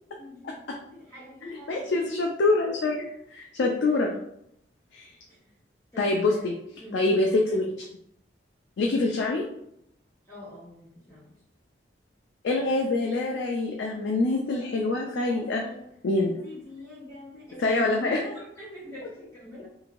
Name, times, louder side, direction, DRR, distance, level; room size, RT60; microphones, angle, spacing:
voice 1, 0.2-2.2 3.7-4.1 5.3-5.6 5.9-6.4 6.8-7.0 10.3-11.3 14.5-15.8 16.1-19.7, left 2 dB, 15° left, -10 dB, 1.2 m, -44 dB
voice 2, 1.7-4.1 4.9-5.1 6.0-6.5 6.9-7.9 8.8-9.4 12.4-15.6 16.0-16.3 17.6-18.2, left 2 dB, 85° left, 0 dB, 0.4 m, -25 dB
3.0 x 2.6 x 2.5 m, 0.74 s
head